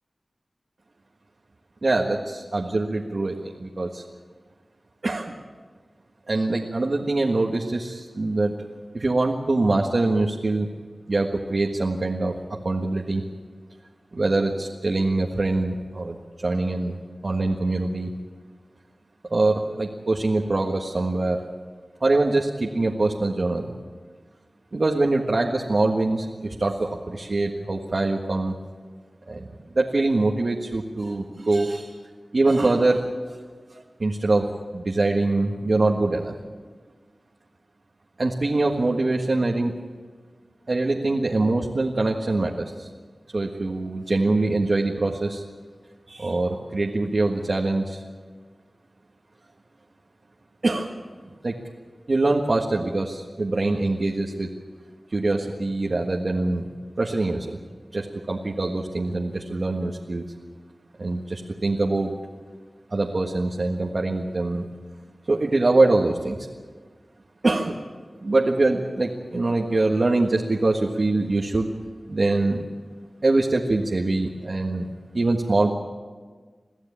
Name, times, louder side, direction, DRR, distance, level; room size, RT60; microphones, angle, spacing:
voice 1, 1.8-4.0 5.0-5.3 6.3-8.5 8.9-10.7 11.1-12.4 12.6-13.2 14.1-17.0 17.2-18.1 19.3-21.4 22.0-23.7 24.7-28.5 29.3-31.9 32.3-33.1 33.7-36.3 38.2-39.7 40.7-42.9 43.3-45.4 46.1-48.0 50.6-50.9 51.4-51.6 52.1-54.5 55.1-56.7 57.0-57.6 57.9-60.2 61.0-62.1 62.9-64.6 65.3-66.5 67.4-67.8 68.2-71.7 72.1-72.6 73.2-75.7, right 2 dB, 60° right, 0 dB, 1.6 m, -24 dB
23.5 x 14.5 x 8.7 m, 1.5 s
wide cardioid pair, 50°, 0 cm